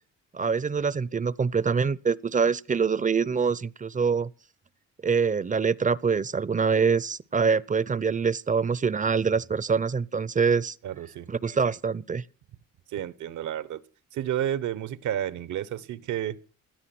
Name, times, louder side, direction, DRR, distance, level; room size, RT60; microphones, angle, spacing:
voice 1, 0.3-4.3 5.0-10.8 11.3-12.2, right 5 dB, 25° right, 0.7 m, -25 dB
voice 2, 10.8-11.3 12.9-13.8 14.1-16.4, right 11 dB, 75° right, 1.1 m, -31 dB
17.5 x 12.5 x 6.1 m
cardioid pair, 90°, 30 cm